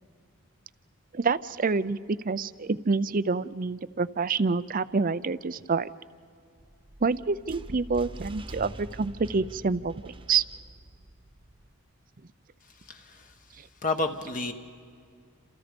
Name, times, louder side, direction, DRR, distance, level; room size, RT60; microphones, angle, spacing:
voice 1, 1.1-2.0 2.2-5.9 7.0-10.4, right 4 dB, 40° right, 16 dB, 0.5 m, -27 dB
sound 1, 6.6-11.7, right 1 dB, 25° right, 1.1 m, -44 dB
voice 2, 12.8-13.3 13.8-14.5, left 3 dB, 40° left, 5 dB, 1.2 m, -30 dB
29.0 x 27.5 x 5.2 m, 2.2 s
head